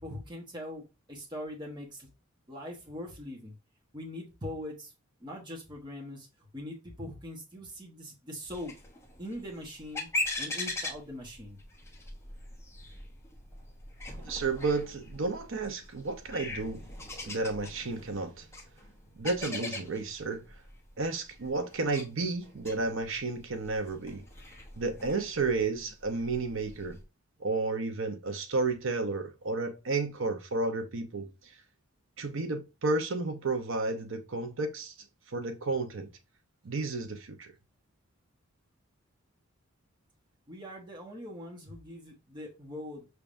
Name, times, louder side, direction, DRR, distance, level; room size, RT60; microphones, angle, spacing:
voice 1, 0.0-2.1 2.5-3.5 3.9-4.9 5.2-6.3 6.5-8.8 9.2-10.1 10.4-11.6 40.5-43.1, left 1 dB, 20° right, 1.1 m, -42 dB
sound 1, 8.5-27.0, left 2 dB, 10° left, 0.9 m, -41 dB
voice 2, 14.2-16.9 17.2-18.5 19.2-20.4 21.0-24.2 24.8-27.0 27.4-31.6 32.2-34.9 35.3-36.1 36.6-37.5, right 3 dB, 65° right, 0.7 m, -32 dB
6.0 x 3.4 x 2.5 m
head